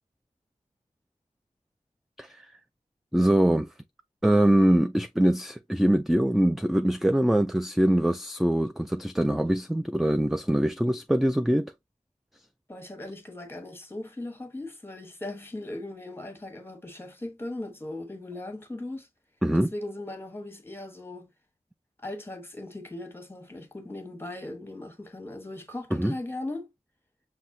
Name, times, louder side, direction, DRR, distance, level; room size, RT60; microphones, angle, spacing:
voice 1, 3.1-3.7 4.2-11.7 19.4-19.7 25.9-26.1, right 1 dB, ahead, 0.3 m, -23 dB
voice 2, 12.7-19.1 19.5-21.3 22.0-26.7, left 2 dB, 15° left, 1.1 m, -38 dB
5.8 x 2.7 x 2.7 m
wide cardioid pair, 80°, 13 cm